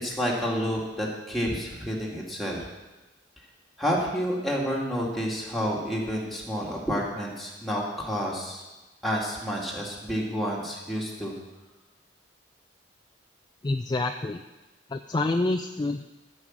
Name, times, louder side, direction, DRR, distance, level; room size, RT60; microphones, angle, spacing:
voice 1, 0.0-2.6 3.8-8.6 9.0-11.3, equal, ahead, -4 dB, 2.2 m, -29 dB
voice 2, 13.6-14.4 14.9-16.0, left 2 dB, 20° left, 5 dB, 0.3 m, -27 dB
14.5 x 5.5 x 7.4 m, 1.1 s
head